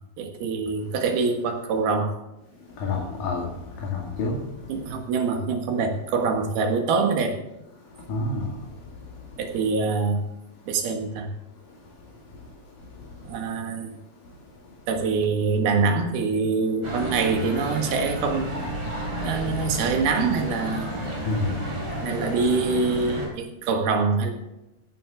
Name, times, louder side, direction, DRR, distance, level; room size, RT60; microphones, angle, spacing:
voice 1, 0.2-2.1 4.7-7.3 9.4-10.2 10.7-11.3 13.3-13.9 14.9-18.5 19.2-20.9 22.0-24.3, right 4 dB, 80° right, 4 dB, 3.5 m, -24 dB
voice 2, 2.7-4.7 7.9-9.4 12.4-12.5 12.8-13.4 14.2-14.3 21.2-21.6, left 3 dB, 65° left, -2 dB, 3.8 m, -31 dB
sound 1, 16.8-23.3, equal, 25° right, 4.3 m, -31 dB
16.5 x 10.5 x 3.6 m, 0.96 s
omnidirectional pair, 4.4 m